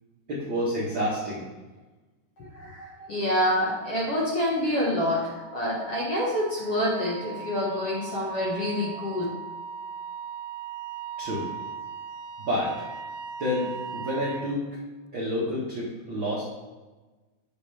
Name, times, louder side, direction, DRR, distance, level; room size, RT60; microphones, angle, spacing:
voice 1, 0.3-1.4 11.2-11.5 12.5-12.9 13.4-14.7 15.1-16.5, equal, 50° right, -7 dB, 1.5 m, -29 dB
voice 2, 2.4-9.2, left 1 dB, 50° left, -5 dB, 2.0 m, -27 dB
Wind instrument woodwind instrument, 5.1-14.6, right 6 dB, 85° right, 2.5 m, -39 dB
10.5 x 6.5 x 3.5 m, 1.2 s
omnidirectional pair, 4.7 m